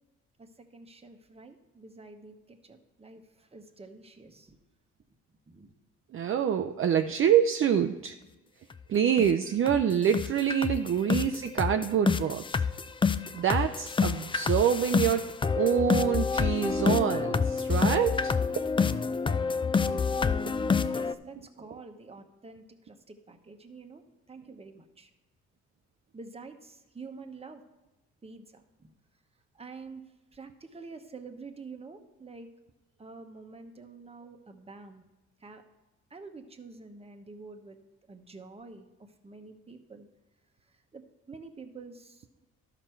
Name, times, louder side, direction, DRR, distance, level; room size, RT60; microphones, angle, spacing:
voice 1, 0.7-4.6 5.5-5.7 13.3-13.4 20.8-25.1 26.1-27.6 28.2-28.9 29.5-30.0 30.3-32.5 33.0-35.0 35.4-35.6 36.1-37.8 38.1-38.9 39.2-40.1 40.9-42.4, right 4 dB, 20° right, 5 dB, 1.0 m, -48 dB
voice 2, 6.1-8.1 8.9-12.4 13.3-15.2 15.6-18.3 20.4-20.7, right 8 dB, 45° right, 6 dB, 0.5 m, -26 dB
sound 1, 8.7-8.8 9.2-9.3 9.7-9.8 10.1-21.1, left 5 dB, 15° left, 0.3 m, -28 dB
12.0 x 5.9 x 4.5 m, 1.1 s
cardioid pair, 90°, 30 cm